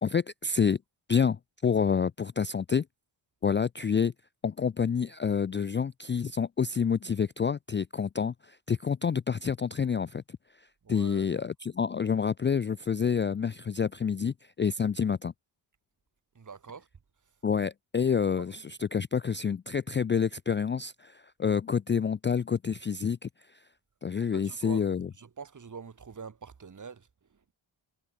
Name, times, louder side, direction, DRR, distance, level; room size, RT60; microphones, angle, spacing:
voice 1, 0.0-0.8 1.1-2.8 3.4-4.1 4.4-10.4 10.9-15.3 17.4-23.3 24.0-25.1, left 6 dB, 25° left, 0.4 m, -28 dB
voice 2, 10.8-11.3 16.3-16.9 24.2-24.8 25.2-27.5, right 6 dB, 40° right, 2.2 m, -45 dB
wide cardioid pair, 105°, 46 cm